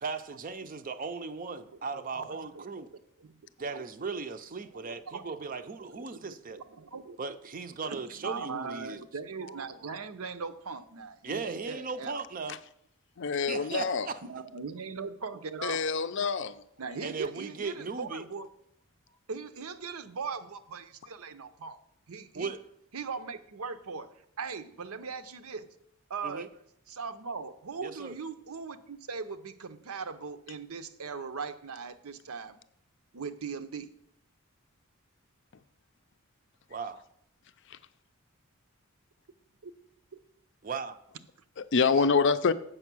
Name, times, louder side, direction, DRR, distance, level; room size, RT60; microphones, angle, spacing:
voice 1, 0.0-2.9 3.6-6.6 7.2-9.0 11.2-12.6 13.3-14.2 17.0-18.2 22.4-22.6 26.2-26.5 27.8-28.1 36.7-37.0 40.6-41.0, right 4 dB, 40° right, 0.5 m, -37 dB
voice 2, 2.1-3.4 3.7-3.8 4.7-5.3 5.9-7.2 7.8-12.2 14.2-15.8 16.8-18.5 19.3-21.8 22.1-22.5 22.9-24.1 24.4-25.7 26.1-26.5 26.9-32.6 33.1-33.9 39.6-39.7 40.1-40.2 42.0-42.1, right 5 dB, 75° right, 0.7 m, -40 dB
voice 3, 13.2-14.1 15.6-16.5 41.6-42.5, left 5 dB, 55° left, 0.5 m, -26 dB
7.9 x 6.3 x 6.1 m
head